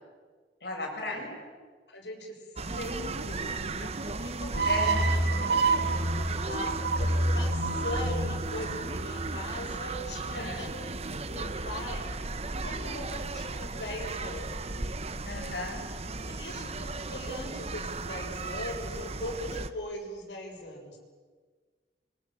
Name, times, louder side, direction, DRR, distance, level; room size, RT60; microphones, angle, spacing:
voice 1, 0.6-1.3 4.6-5.0 10.3-10.7 15.3-15.8, left 2 dB, 65° left, 0 dB, 7.9 m, -35 dB
voice 2, 1.9-2.4 2.7-5.4 6.5-10.7 11.3-12.1 12.6-14.8 16.3-21.0, left 1 dB, 85° left, 0 dB, 6.6 m, -40 dB
sound 1, 2.6-19.7, right 3 dB, 35° right, 1.1 m, -36 dB
sound 2, 4.5-9.8, right 2 dB, 80° right, 2.3 m, -28 dB
27.0 x 24.5 x 7.6 m, 1.5 s
head